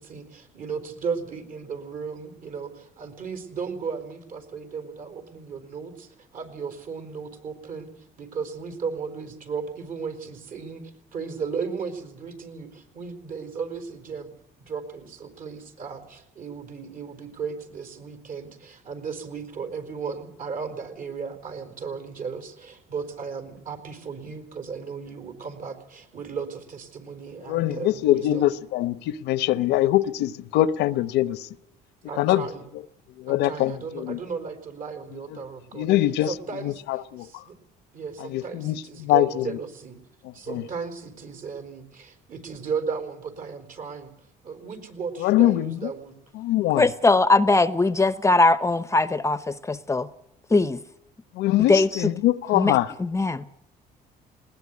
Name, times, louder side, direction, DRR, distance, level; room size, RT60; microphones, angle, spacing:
voice 1, 0.0-14.3 14.6-28.5 32.0-32.7 33.3-35.9 36.2-37.5 37.9-40.0 40.3-44.1 44.4-46.2, right 5 dB, 55° right, 4.6 m, -35 dB
voice 2, 27.5-31.5 32.2-32.5 33.2-34.2 35.3-35.4 35.7-36.3 36.6-37.3 38.2-39.5 40.5-40.7 45.2-45.8 46.3-46.8 51.3-52.9, left 14 dB, 85° left, 0.9 m, -23 dB
voice 3, 46.8-50.1 50.5-50.8 51.7-52.1 52.5-53.4, left 3 dB, 15° left, 0.8 m, -21 dB
20.0 x 19.0 x 9.6 m
cardioid pair, 110°, 17 cm